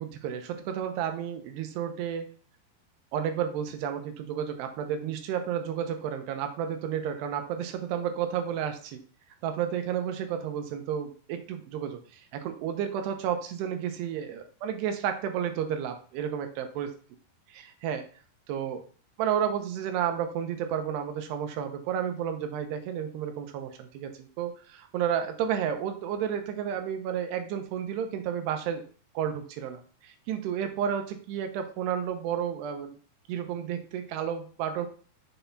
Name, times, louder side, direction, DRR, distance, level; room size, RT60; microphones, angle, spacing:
voice 1, 0.0-2.3 3.1-9.0 9.4-16.9 17.5-18.0 18.5-18.8 19.2-28.8 29.1-33.0 33.3-34.9, right 9 dB, 85° right, 6 dB, 2.9 m, -31 dB
6.9 x 4.1 x 3.9 m, 0.41 s
omnidirectional pair, 4.6 m